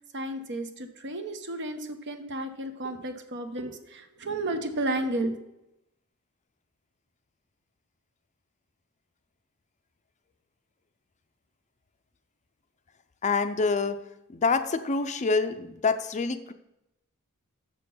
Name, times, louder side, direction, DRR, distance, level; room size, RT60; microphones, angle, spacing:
voice 1, 0.0-5.3, right 1 dB, 55° right, 7 dB, 0.9 m, -32 dB
voice 2, 13.2-14.0 14.3-16.5, left 4 dB, 30° left, 10 dB, 0.5 m, -26 dB
7.1 x 6.7 x 5.5 m, 0.89 s
head